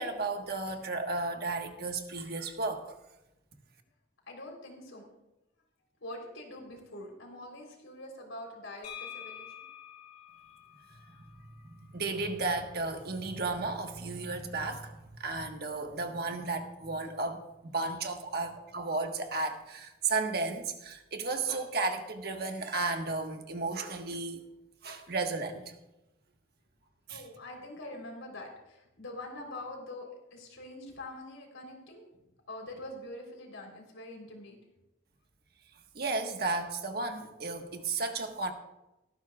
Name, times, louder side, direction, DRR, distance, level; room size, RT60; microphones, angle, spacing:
voice 1, 0.0-2.9 11.1-11.2 11.6-24.4 24.8-25.7 27.1-27.2 35.9-38.5, right 3 dB, 50° right, 4 dB, 1.4 m, -34 dB
voice 2, 4.3-5.1 6.0-9.7 10.5-10.6 27.1-34.6, left 1 dB, 85° left, 1 dB, 3.7 m, -45 dB
sound 1, 8.8-12.6, left 9 dB, 35° left, 3.1 m, -48 dB
17.5 x 14.5 x 2.4 m, 0.95 s
head